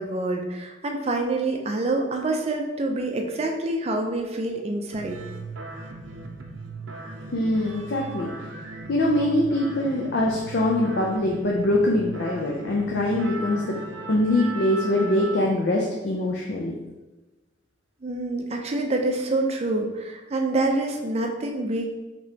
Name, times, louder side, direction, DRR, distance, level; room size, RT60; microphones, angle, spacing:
voice 1, 0.0-5.2 18.0-21.9, right 2 dB, 35° right, 2 dB, 0.5 m, -26 dB
sound 1, 4.9-15.5, right 2 dB, 80° right, 0.5 m, -38 dB
voice 2, 7.3-8.3 8.9-13.8 14.1-16.7, left 1 dB, 60° left, -2 dB, 0.5 m, -23 dB
4.9 x 3.0 x 2.8 m, 1.1 s
head